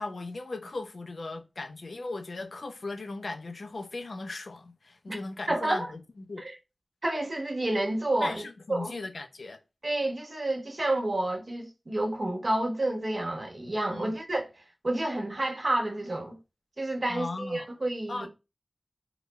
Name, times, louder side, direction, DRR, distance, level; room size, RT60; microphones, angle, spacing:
voice 1, 0.0-6.4 8.2-9.6 13.9-14.2 17.1-17.7 18.1-18.3, left 3 dB, 80° left, 0.6 m, -37 dB
voice 2, 5.5-5.9 6.4-6.5 7.0-8.4 8.7-8.9 9.8-14.5 14.8-16.4 16.8-18.3, right 1 dB, 50° right, 1.1 m, -29 dB
3.9 x 2.3 x 3.9 m
wide cardioid pair, 75°, 0 cm